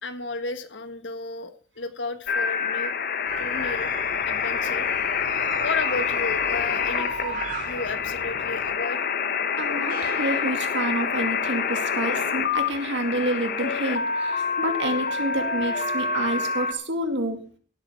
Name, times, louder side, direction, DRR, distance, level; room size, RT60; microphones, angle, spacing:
voice 1, 0.0-2.9 3.4-3.9 4.2-4.9 5.6-9.0 12.1-12.2, left 3 dB, 75° left, 11 dB, 1.5 m, -33 dB
sound 1, 2.3-16.7, left 6 dB, 55° left, 1.1 m, -27 dB
sound 2, 3.3-8.8 9.9-11.5, right 3 dB, 45° right, 3.3 m, -37 dB
voice 2, 9.6-17.4, right 1 dB, 70° right, 7 dB, 2.3 m, -28 dB
16.5 x 7.9 x 5.9 m, 0.43 s
head